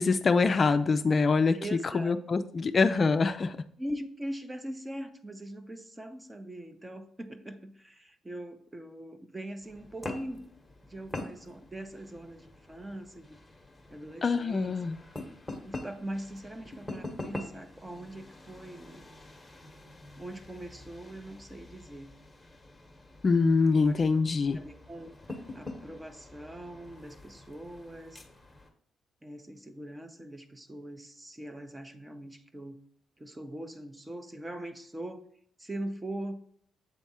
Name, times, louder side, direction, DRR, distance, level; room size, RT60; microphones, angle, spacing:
voice 1, 0.0-1.6 1.9-3.6 14.2-15.0 23.2-24.6, left 4 dB, 40° left, 9 dB, 0.3 m, -24 dB
voice 2, 1.6-2.1 3.8-10.5 10.9-13.4 13.9-14.8 15.6-19.1 20.2-22.1 23.7-24.0 24.5-28.2 29.2-32.8 33.2-35.3 35.6-36.4, right 1 dB, 15° right, 9 dB, 0.7 m, -41 dB
sound 1, 9.6-28.7, left 2 dB, 5° left, 1.1 m, -45 dB
7.9 x 3.5 x 4.2 m, 0.65 s
cardioid pair, 90°, 0 cm